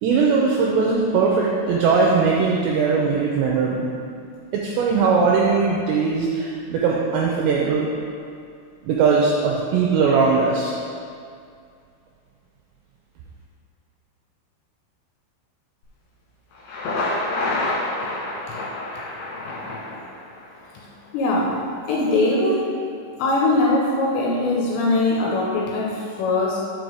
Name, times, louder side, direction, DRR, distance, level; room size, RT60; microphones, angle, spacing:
voice 1, 0.0-3.9 4.5-7.9 8.8-10.7, right 4 dB, 85° right, -2 dB, 2.5 m, -20 dB
Thunder, 16.5-20.5, left 2 dB, 60° left, 2.7 m, -27 dB
voice 2, 21.1-21.6 21.9-22.7 23.2-26.7, left 2 dB, 80° left, -2 dB, 2.7 m, -21 dB
6.4 x 5.3 x 6.3 m, 2.3 s
omnidirectional pair, 5.7 m